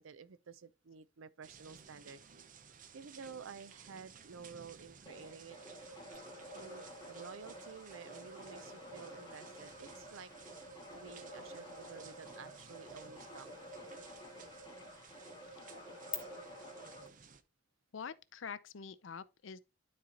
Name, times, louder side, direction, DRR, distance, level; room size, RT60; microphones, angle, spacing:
voice 1, 0.0-2.2 2.7-5.6 6.5-10.3 10.9-13.5, right 5 dB, 80° right, 0.5 m, -52 dB
sound 1, 1.4-17.4, right 6 dB, 40° right, 0.6 m, -58 dB
sound 2, 5.1-17.1, equal, 20° left, 2.5 m, -51 dB
sound 3, 6.1-16.1, left 14 dB, 40° left, 1.5 m, -55 dB
voice 2, 17.9-19.6, left 6 dB, 70° left, 0.6 m, -45 dB
12.0 x 4.2 x 2.8 m
head